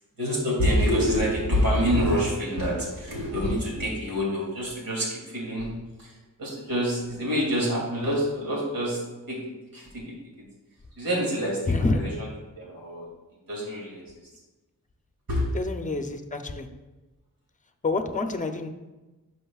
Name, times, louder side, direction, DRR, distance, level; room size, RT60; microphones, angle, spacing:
voice 1, 0.2-5.7 6.0-6.1 6.4-9.0 9.3-9.4 9.7-10.1 11.0-12.3 12.6-13.1 13.5-14.0 15.3-15.4, equal, 85° right, -4 dB, 2.7 m, -26 dB
voice 2, 11.7-12.0 15.5-16.7 17.8-18.7, left 3 dB, 25° left, 6 dB, 0.6 m, -27 dB
11.0 x 6.4 x 2.4 m, 1.1 s
wide cardioid pair, 135°, 34 cm